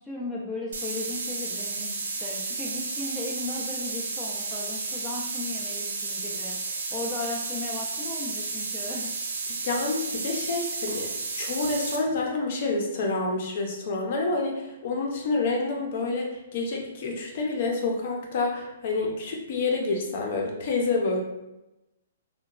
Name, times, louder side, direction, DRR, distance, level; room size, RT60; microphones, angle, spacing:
voice 1, 0.0-1.9 2.2-9.1, left 2 dB, 5° left, -6 dB, 0.4 m, -36 dB
sound 1, 0.7-12.0, right 3 dB, 80° right, 0.4 m, -32 dB
voice 2, 9.6-11.1 11.4-21.2, left 3 dB, 50° left, 0 dB, 0.6 m, -28 dB
2.8 x 2.2 x 2.3 m, 0.95 s
hypercardioid pair, 150°, 0 cm